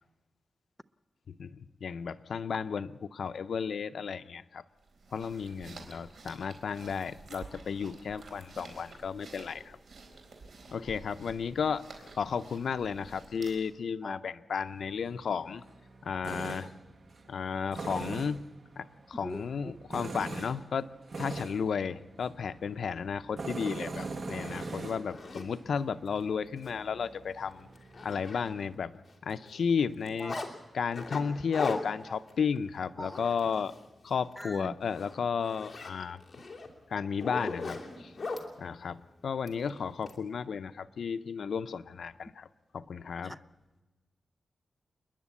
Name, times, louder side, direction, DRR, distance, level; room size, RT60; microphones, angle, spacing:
voice 1, 1.3-4.6 5.1-9.8 10.7-11.8 12.1-15.6 16.0-16.7 17.3-18.4 18.8-20.9 21.2-27.7 28.0-28.9 29.2-30.4 30.7-33.7 34.0-36.2 36.9-38.1 38.6-42.5 42.7-43.4, left 6 dB, 80° left, 0.6 m, -33 dB
sound 1, 4.8-13.8, right 3 dB, 80° right, 4.1 m, -51 dB
Tools, 14.7-28.8, right 3 dB, 55° right, 1.4 m, -43 dB
voice 2, 19.2-19.8 30.2-30.5 33.0-33.2 34.4-34.7 43.2-43.4, equal, ahead, 0.6 m, -40 dB
Zipper (clothing), 24.2-25.5 26.1-26.2 26.6-26.7 27.1-27.2 27.5-28.8 29.1-30.5 30.9-33.9 34.2-34.5 34.8-38.5 39.5-40.2, left 3 dB, 40° left, 2.9 m, -40 dB
29.0 x 10.5 x 8.4 m
wide cardioid pair, 105°, 0 cm